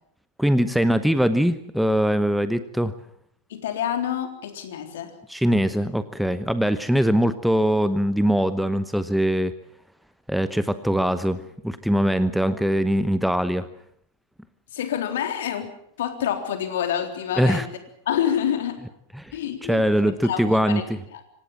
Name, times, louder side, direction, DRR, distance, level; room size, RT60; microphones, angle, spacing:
voice 1, 0.4-2.9 5.3-9.5 10.3-13.7 17.4-17.6 19.1-19.4 19.7-20.8, equal, ahead, 12 dB, 1.0 m, -22 dB
voice 2, 3.5-5.1 14.7-15.7 16.0-17.7 18.1-18.8 19.3-20.8 21.1-21.2, left 9 dB, 60° left, 6 dB, 3.7 m, -27 dB
26.0 x 17.5 x 7.4 m, 0.71 s
figure-of-eight pair, 90°, 0 cm